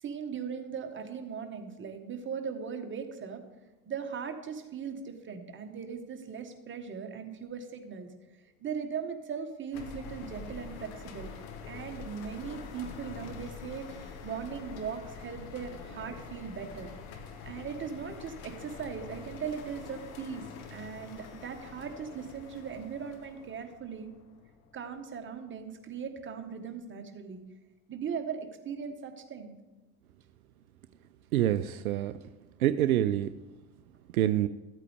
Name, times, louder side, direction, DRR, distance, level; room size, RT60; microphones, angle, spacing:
voice 1, 0.0-3.4 3.9-8.1 8.6-11.3 11.6-16.9 17.4-20.4 20.7-24.1 24.7-27.4 27.9-29.5, right 6 dB, 25° right, 5 dB, 1.5 m, -39 dB
sound 1, 9.7-25.1, left 5 dB, 60° left, 1.3 m, -46 dB
voice 2, 31.3-32.1 32.6-33.3 34.1-34.5, right 12 dB, 75° right, 12 dB, 0.5 m, -26 dB
13.5 x 8.3 x 3.4 m, 1.1 s
figure-of-eight pair, 65°, 43 cm